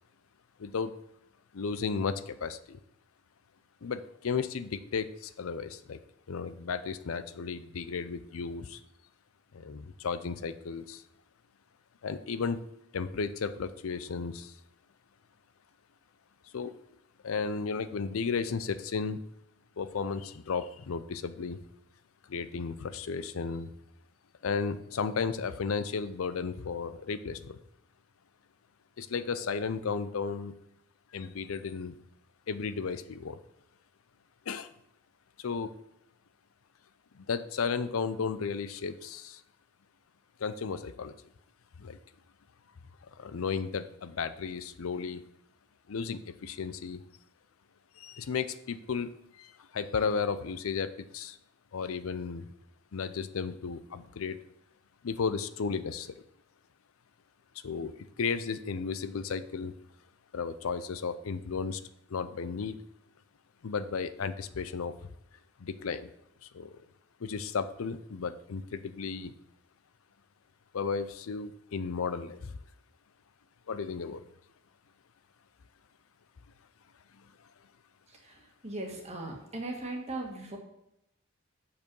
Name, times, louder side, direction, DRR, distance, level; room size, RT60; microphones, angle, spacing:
voice 1, 0.6-0.9 1.5-2.8 3.8-6.0 6.3-8.8 9.5-11.0 12.0-12.6 12.9-14.5 16.5-16.7 17.2-19.2 19.8-21.6 22.3-23.7 24.4-27.6 29.0-30.5 31.1-31.9 32.5-33.4 34.5-34.7 35.4-35.7 37.1-39.4 40.4-41.1 41.8-42.0 43.2-45.2 45.9-47.0 48.0-49.1 49.4-51.4 51.7-52.5 52.9-54.4 55.0-56.1 57.6-59.7 60.3-61.8 62.1-62.8 63.6-64.9 65.6-66.1 66.5-66.7 67.2-69.3 70.7-72.5 73.7-74.2, left 5 dB, 85° left, 13 dB, 0.5 m, -34 dB
voice 2, 78.1-80.6, right 2 dB, 30° right, 1 dB, 1.5 m, -39 dB
6.8 x 5.5 x 5.4 m, 0.80 s
head